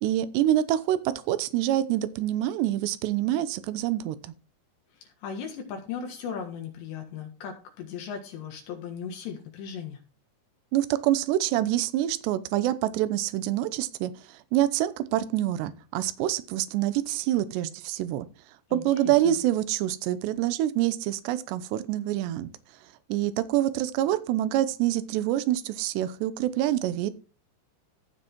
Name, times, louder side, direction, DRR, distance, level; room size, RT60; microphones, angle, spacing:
voice 1, 0.0-4.3 10.7-18.3 18.7-22.5 23.1-27.1, right 13 dB, 75° right, 14 dB, 2.8 m, -26 dB
voice 2, 5.0-10.0 18.7-19.4, left 7 dB, 70° left, 3 dB, 3.6 m, -37 dB
15.0 x 6.0 x 4.5 m, 0.34 s
omnidirectional pair, 5.4 m